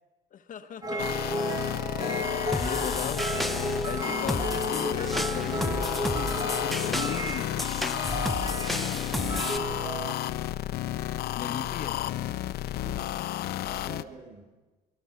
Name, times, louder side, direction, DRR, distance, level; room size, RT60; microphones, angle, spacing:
voice 1, 0.3-1.3 1.8-7.6 11.3-12.3, left 8 dB, 50° left, 9 dB, 1.4 m, -38 dB
sound 1, 0.8-10.1, equal, 20° right, 1.9 m, -33 dB
sound 2, 1.0-14.0, left 13 dB, 70° left, 0.8 m, -32 dB
sound 3, 2.5-9.6, equal, ahead, 1.0 m, -33 dB
voice 2, 8.5-9.0 9.3-10.4 12.3-12.5 12.8-14.6, right 4 dB, 65° right, 0 dB, 3.2 m, -49 dB
22.5 x 21.0 x 6.0 m, 1.2 s
cardioid pair, 110°, 17 cm